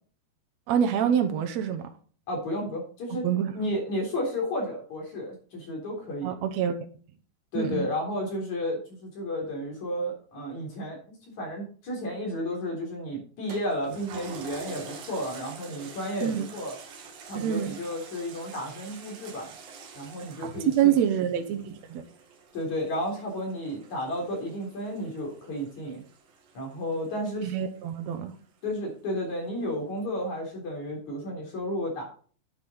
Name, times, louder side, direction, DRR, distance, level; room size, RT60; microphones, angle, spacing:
voice 1, 0.7-1.9 3.2-3.5 6.2-6.7 7.5-7.8 16.2-16.4 17.3-17.7 20.8-22.0 27.4-28.3, right 9 dB, 90° right, 1.5 m, -26 dB
voice 2, 2.3-3.3 3.5-6.3 7.5-11.0 11.4-16.8 17.3-19.5 19.9-21.0 22.5-26.0 26.5-27.5 28.6-32.1, equal, 45° left, 4.6 m, -32 dB
Toilet flush, 13.5-28.3 28.8-28.9, right 5 dB, 60° right, 3.3 m, -47 dB
10.5 x 8.2 x 3.9 m
omnidirectional pair, 4.9 m